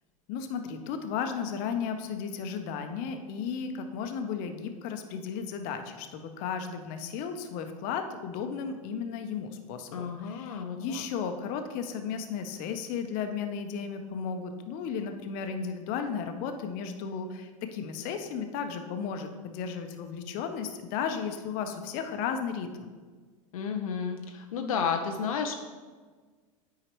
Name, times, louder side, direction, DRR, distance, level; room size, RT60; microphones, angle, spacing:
voice 1, 0.3-22.9, left 6 dB, 55° left, 7 dB, 0.8 m, -34 dB
voice 2, 9.9-11.0 23.5-25.6, left 6 dB, 80° left, 4 dB, 0.6 m, -32 dB
8.9 x 4.8 x 3.1 m, 1.4 s
hypercardioid pair, 100°, 18 cm